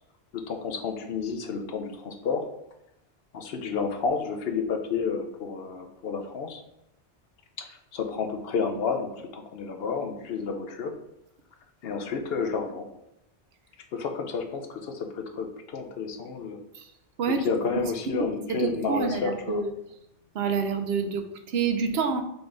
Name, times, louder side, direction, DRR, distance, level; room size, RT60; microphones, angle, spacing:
voice 1, 0.3-2.4 3.3-6.6 7.6-10.9 11.8-12.9 13.9-16.6 17.4-19.6, left 5 dB, 65° left, 5 dB, 0.8 m, -31 dB
voice 2, 18.5-19.7 20.3-22.2, right 5 dB, 70° right, 7 dB, 0.8 m, -27 dB
3.9 x 3.5 x 3.7 m, 0.82 s
omnidirectional pair, 1.1 m